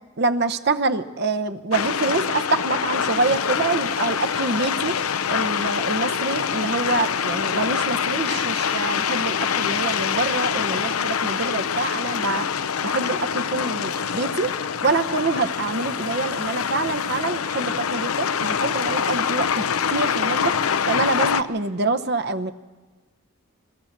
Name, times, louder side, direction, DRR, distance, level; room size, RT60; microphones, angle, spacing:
voice 1, 0.2-4.9 5.3-12.5 12.8-14.5 14.8-19.6 19.9-20.6 20.9-22.5, right 3 dB, 50° right, 8 dB, 0.9 m, -26 dB
sound 1, 1.7-21.4, left 7 dB, 90° left, 0.6 m, -25 dB
22.0 x 16.5 x 7.4 m, 1.3 s
head